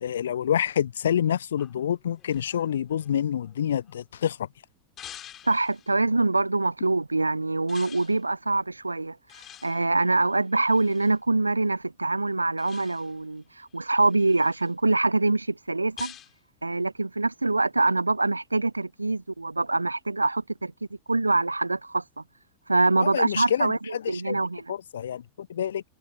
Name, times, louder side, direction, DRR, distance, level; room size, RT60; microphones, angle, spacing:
voice 1, 0.0-4.5 23.0-24.4 24.7-25.8, left 9 dB, 65° left, 0.8 m, -27 dB
sound 1, 1.6-4.2 5.0-6.0 7.7-8.2 9.3-11.2 12.6-13.2 13.8-14.7 16.0-16.4, left 11 dB, 30° left, 7.4 m, -48 dB
voice 2, 5.4-9.2 9.6-16.1 16.6-20.7 21.1-22.2 22.7-24.7, right 2 dB, 80° right, 0.6 m, -24 dB
figure-of-eight pair, 90°, 0 cm